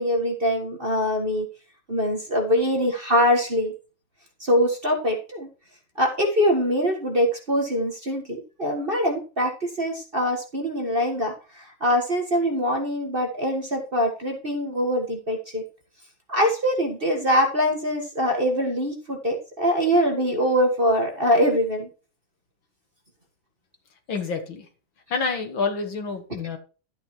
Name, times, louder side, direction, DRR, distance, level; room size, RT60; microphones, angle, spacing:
voice 1, 0.0-1.5 1.9-3.7 4.4-5.5 6.0-15.6 16.3-21.9, equal, 30° right, 2 dB, 1.4 m, -23 dB
voice 2, 24.1-24.7 25.1-26.6, left 4 dB, 65° left, 6 dB, 2.3 m, -28 dB
12.0 x 8.5 x 3.1 m, 0.34 s
omnidirectional pair, 2.4 m